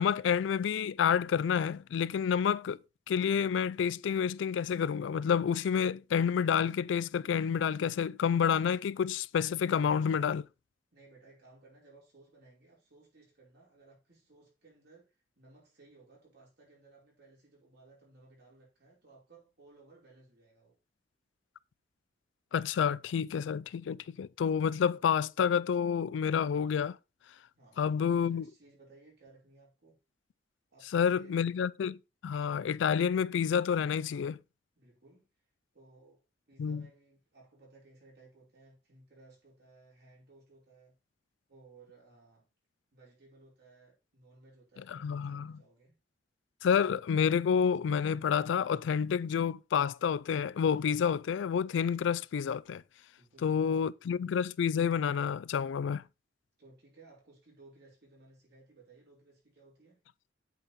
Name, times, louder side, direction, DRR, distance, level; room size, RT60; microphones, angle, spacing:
voice 1, 0.0-2.8 3.1-10.4 22.5-27.0 27.8-28.4 30.9-32.0 32.2-34.4 36.6-36.8 44.9-45.5 46.6-52.8 53.4-56.0, left 7 dB, 75° left, 0.3 m, -29 dB
voice 2, 9.7-10.3 10.9-15.1 15.4-20.7 27.6-30.0 30.7-31.4 34.7-35.3 35.7-36.2 36.5-40.9 41.5-42.4 42.9-46.0 53.2-53.8 56.6-60.0, right 3 dB, 60° right, 4.8 m, -59 dB
8.3 x 5.3 x 4.2 m
head